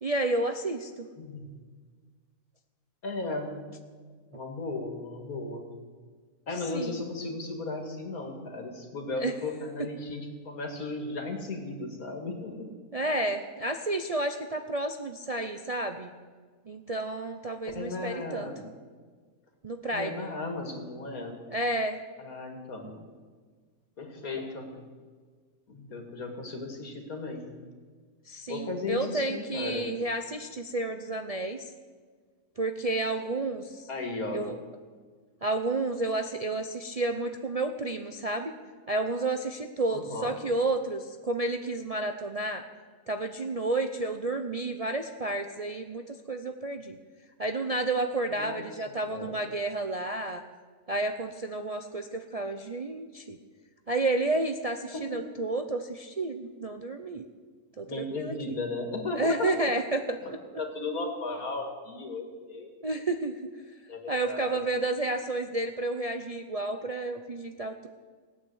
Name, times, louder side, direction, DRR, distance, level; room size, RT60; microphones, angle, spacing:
voice 1, 0.0-1.1 6.7-7.0 9.2-9.3 12.9-16.1 16.7-18.5 19.6-20.3 21.5-22.0 28.3-31.7 32.6-33.9 34.3-34.6 35.4-38.5 38.9-42.7 43.1-47.0 47.4-50.4 50.9-53.4 53.9-57.3 57.8-58.5 59.1-60.2 62.8-63.4 64.1-67.9, right 2 dB, 40° right, 5 dB, 0.5 m, -31 dB
voice 2, 1.2-1.5 3.0-3.5 4.3-5.7 6.5-12.7 17.7-18.6 19.9-21.4 22.2-23.0 24.0-24.7 25.7-27.5 28.5-29.9 33.9-34.5 39.9-40.4 48.4-48.7 49.1-49.4 54.9-55.2 57.8-59.5 60.2-62.7 63.9-64.6, left 3 dB, 75° left, 3 dB, 2.6 m, -35 dB
17.0 x 9.1 x 7.9 m, 1.5 s
omnidirectional pair, 1.5 m